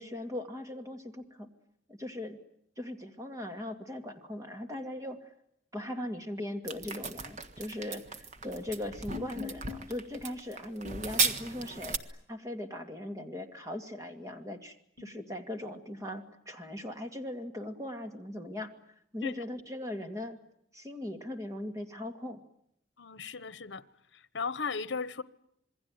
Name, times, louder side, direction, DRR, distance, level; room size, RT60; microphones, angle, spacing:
voice 1, 0.0-1.5 1.9-2.4 2.8-5.3 5.7-18.7 19.1-20.4 20.7-22.4, left 1 dB, 15° right, 2.4 m, -39 dB
sound 1, 6.7-12.0, right 4 dB, 40° right, 1.5 m, -35 dB
voice 2, 23.0-23.8 24.3-25.2, left 5 dB, 80° left, 1.1 m, -36 dB
27.0 x 21.5 x 9.5 m
head